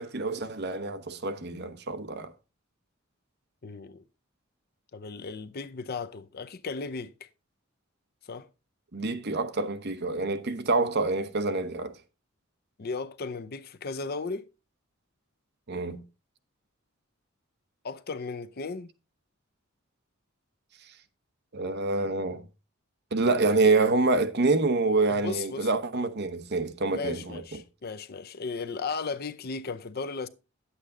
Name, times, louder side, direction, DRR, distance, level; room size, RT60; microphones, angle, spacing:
voice 1, 0.0-2.3 8.9-11.9 15.7-16.0 21.5-22.5 23.1-27.6, right 3 dB, 55° right, 0.9 m, -27 dB
voice 2, 3.6-4.0 4.9-7.1 8.2-8.5 12.8-14.5 17.8-18.9 25.1-25.7 26.9-30.3, left 4 dB, 50° left, 0.6 m, -35 dB
9.8 x 8.3 x 3.7 m
head